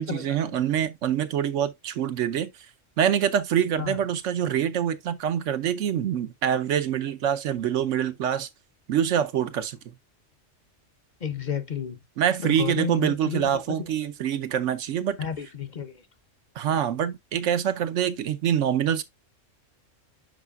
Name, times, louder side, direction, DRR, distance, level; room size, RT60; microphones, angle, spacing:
voice 1, 0.0-2.5 3.0-8.5 8.9-9.9 12.2-15.2 16.6-19.0, right 9 dB, 75° right, 1.0 m, -25 dB
voice 2, 11.2-12.0 12.4-13.5 15.2-15.9, left 6 dB, 45° left, 0.7 m, -31 dB
10.0 x 4.8 x 2.3 m
omnidirectional pair, 1.3 m